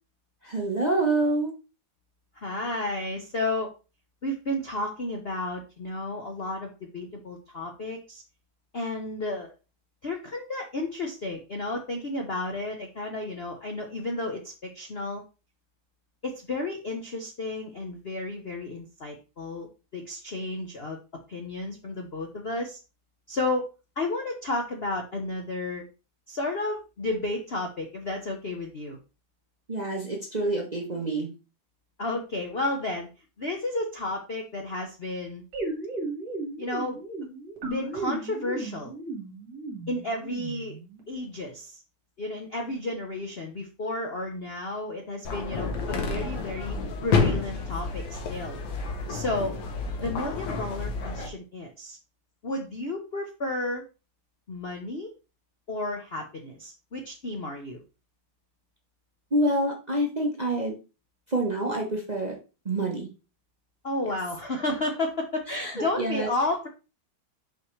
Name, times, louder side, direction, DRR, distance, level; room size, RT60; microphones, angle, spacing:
voice 1, 0.5-1.5 29.7-31.3 59.3-60.8 61.3-62.3 62.6-63.1 65.5-65.7 66.0-66.3, right 1 dB, 30° right, 1 dB, 0.9 m, -27 dB
voice 2, 2.3-3.7 4.2-8.2 8.7-9.5 10.0-15.2 16.2-19.7 19.9-21.0 21.3-22.8 23.3-23.6 24.0-25.8 26.3-29.0 32.0-33.1 33.4-35.4 36.6-37.0 37.6-38.9 39.9-40.8 41.1-41.8 42.2-46.8 47.0-48.6 49.1-49.5 50.0-52.0 52.4-53.8 54.5-55.1 55.7-57.8 63.8-66.7, left 2 dB, 50° left, 2 dB, 0.7 m, -32 dB
sound 1, 35.5-41.0, right 3 dB, 60° right, 2.2 m, -35 dB
sound 2, 45.2-51.3, left 4 dB, 75° left, 1.9 m, -29 dB
5.8 x 5.6 x 3.2 m, 0.30 s
omnidirectional pair, 2.2 m